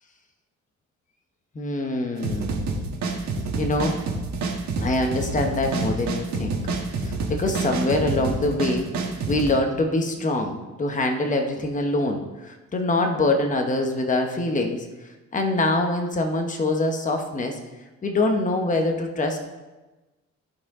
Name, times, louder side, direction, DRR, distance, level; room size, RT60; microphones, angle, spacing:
voice 1, 1.5-2.7 3.6-4.0 4.8-6.6 7.0-14.9 15.3-17.6 18.0-19.4, left 2 dB, 25° left, 3 dB, 1.0 m, -24 dB
sound 1, 2.2-9.5, right 3 dB, 65° right, 1.6 m, -27 dB
13.5 x 4.6 x 3.7 m, 1.1 s
cardioid pair, 90°, 30 cm